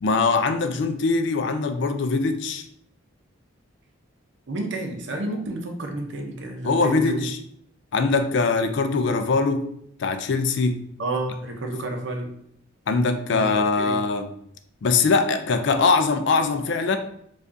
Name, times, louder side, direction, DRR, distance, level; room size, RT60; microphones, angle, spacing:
voice 1, 0.0-2.7 6.6-7.4 7.9-9.7 10.0-10.8 12.9-14.3 14.8-17.0, left 4 dB, 55° left, 8 dB, 0.3 m, -22 dB
voice 2, 4.5-7.3 11.0-12.3 13.3-13.5 13.8-14.0, right 2 dB, 60° right, 3 dB, 0.6 m, -30 dB
4.7 x 2.4 x 2.6 m, 0.70 s
head